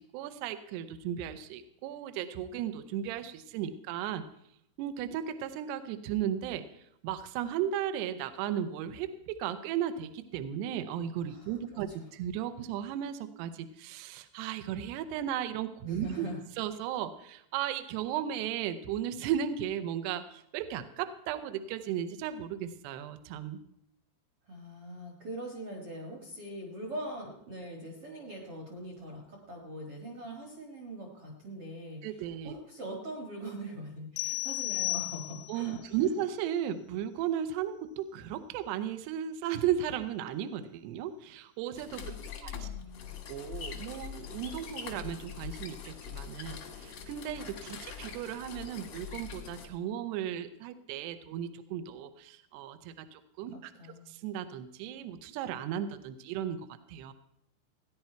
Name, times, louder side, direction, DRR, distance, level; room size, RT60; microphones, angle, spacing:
voice 1, 0.0-4.2 4.8-16.3 16.6-23.6 32.0-32.5 35.5-42.1 42.4-42.7 43.3-53.7 54.1-56.6 56.9-57.1, right 10 dB, 80° right, 10 dB, 2.5 m, -35 dB
voice 2, 11.2-12.0 15.9-16.4 24.5-35.8 36.1-36.2 41.9-43.1 53.5-54.1, right 1 dB, 55° right, 0 dB, 1.6 m, -42 dB
sound 1, 34.2-35.7, left 26 dB, 80° left, 2.6 m, -34 dB
sound 2, 41.8-49.7, left 8 dB, 65° left, 1.6 m, -43 dB
16.5 x 10.0 x 4.5 m, 0.74 s
omnidirectional pair, 5.3 m